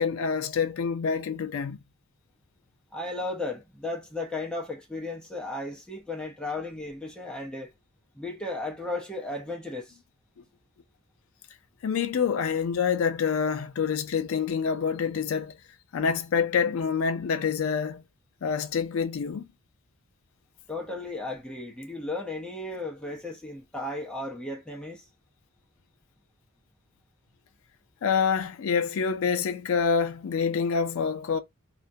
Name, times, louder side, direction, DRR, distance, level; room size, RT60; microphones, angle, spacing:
voice 1, 0.0-1.8 11.8-15.5 15.9-18.0 18.4-19.5 28.0-31.4, left 6 dB, 65° left, 0.3 m, -26 dB
voice 2, 2.9-7.7 8.1-10.0 20.7-25.0, left 2 dB, 5° left, 0.6 m, -35 dB
2.3 x 2.0 x 2.6 m
head